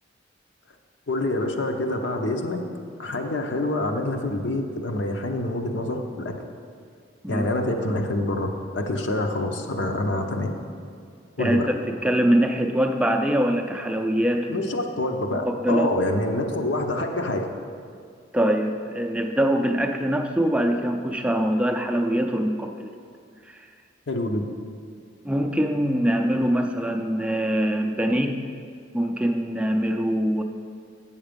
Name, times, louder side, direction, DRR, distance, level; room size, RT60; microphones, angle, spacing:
voice 1, 1.1-2.6 3.0-6.4 7.3-10.5 11.4-11.7 14.5-17.5 24.1-24.5, left 1 dB, 70° left, 4 dB, 0.8 m, -26 dB
voice 2, 11.9-14.6 15.6-15.9 18.3-22.9 25.2-28.4 28.9-30.4, right 1 dB, 5° right, 4 dB, 0.4 m, -23 dB
7.9 x 7.2 x 5.2 m, 2.2 s
head